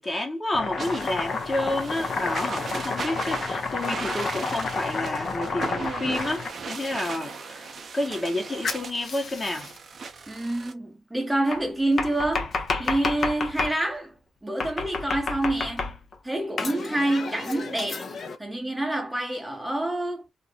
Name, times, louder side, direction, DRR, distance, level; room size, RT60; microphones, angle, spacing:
voice 1, 0.0-9.7, left 1 dB, 25° left, 1.0 m, -30 dB
Domestic sounds home sounds, 0.5-6.9 8.6-9.8 11.5-13.8 14.6-16.2 16.6-18.4, left 4 dB, 50° left, 0.5 m, -31 dB
sound 1, 0.8-10.7, right 5 dB, 55° right, 0.5 m, -38 dB
voice 2, 10.3-12.5 12.8-14.1 14.4-16.0 16.2-18.1 18.4-20.3, right 1 dB, 10° right, 0.6 m, -27 dB
2.4 x 2.0 x 2.7 m
supercardioid pair, 55°, 0 cm